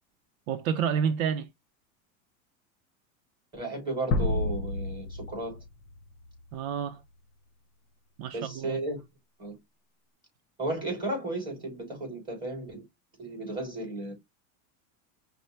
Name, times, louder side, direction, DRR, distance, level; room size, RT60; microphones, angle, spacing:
voice 1, 0.5-1.5 6.5-7.0 8.2-8.8, right 7 dB, 70° right, 0.6 m, -29 dB
voice 2, 3.5-5.6 8.3-9.0 9.4-9.6 10.6-12.8 13.2-14.1, right 2 dB, 10° right, 3.1 m, -34 dB
sound 1, 4.1-6.5, left 3 dB, 30° left, 0.9 m, -30 dB
5.5 x 2.2 x 3.1 m
supercardioid pair, 155°, 42 cm